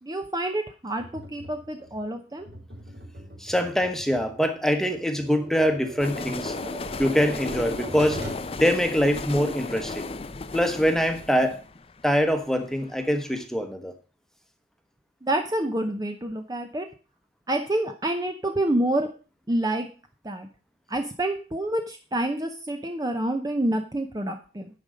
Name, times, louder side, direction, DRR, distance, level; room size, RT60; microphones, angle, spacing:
voice 1, 0.0-2.5 15.2-16.9 17.5-19.1 19.5-19.9 20.2-20.5 20.9-24.7, right 1 dB, 20° right, 5 dB, 0.7 m, -28 dB
Tap, 1.0-8.5, right 1 dB, 65° right, 3.6 m, -42 dB
voice 2, 3.4-6.5 7.0-8.2 8.5-10.0 10.5-11.6 12.0-13.9, equal, 5° left, 6 dB, 1.1 m, -24 dB
sound 1, 6.0-13.0, left 3 dB, 35° left, 0.5 m, -35 dB
10.0 x 5.4 x 6.3 m, 0.35 s
head